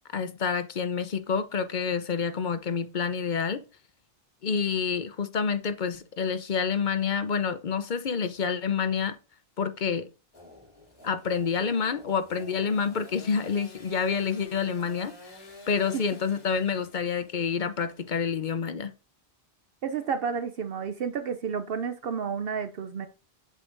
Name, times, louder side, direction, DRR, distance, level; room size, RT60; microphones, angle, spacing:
voice 1, 0.1-3.6 4.4-9.2 9.6-10.1 11.0-15.4 15.7-18.9, left 6 dB, 50° left, 0.8 m, -28 dB
Engine / Sawing, 10.3-18.6, left 2 dB, 30° left, 4.4 m, -50 dB
voice 2, 19.8-23.1, right 6 dB, 65° right, 0.8 m, -31 dB
8.2 x 7.9 x 2.6 m
omnidirectional pair, 1.1 m